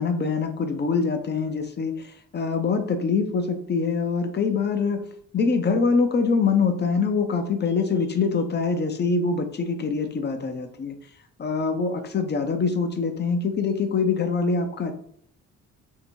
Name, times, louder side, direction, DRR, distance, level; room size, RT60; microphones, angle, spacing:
voice 1, 0.0-5.0 5.3-10.9 11.4-14.9, left 4 dB, 35° left, 6 dB, 0.6 m, -24 dB
2.8 x 2.6 x 4.4 m, 0.65 s
cardioid pair, 90°, 30 cm